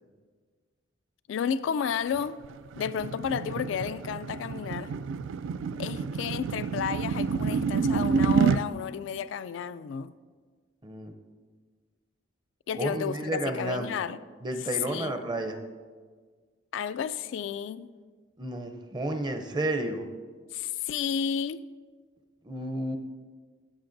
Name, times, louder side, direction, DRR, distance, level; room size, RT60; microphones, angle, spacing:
voice 1, 1.3-2.4 2.8-4.9 5.8-10.1 12.7-14.2 14.9-15.1 16.7-17.9 20.5-21.6, left 7 dB, 75° left, 13 dB, 0.3 m, -32 dB
sound 1, 2.1-8.6, right 5 dB, 80° right, 0.3 m, -28 dB
voice 2, 10.8-11.1 12.7-14.0 14.4-15.6 18.4-20.1 22.4-23.0, right 1 dB, 25° right, 6 dB, 0.6 m, -31 dB
14.0 x 7.7 x 2.6 m, 1.5 s
head